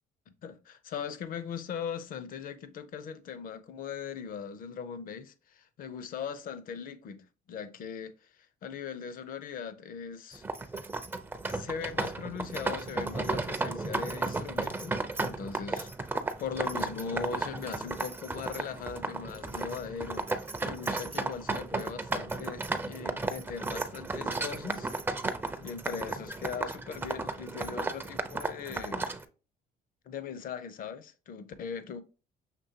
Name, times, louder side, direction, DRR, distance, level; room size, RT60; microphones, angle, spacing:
voice 1, 0.3-8.1 8.6-10.4 11.5-15.9 16.4-24.9 25.6-29.2 30.1-32.0, left 6 dB, 55° left, 0.6 m, -40 dB
sound 1, 10.3-29.2, right 2 dB, 10° right, 0.4 m, -34 dB
6.0 x 3.1 x 2.8 m
cardioid pair, 110°, 17 cm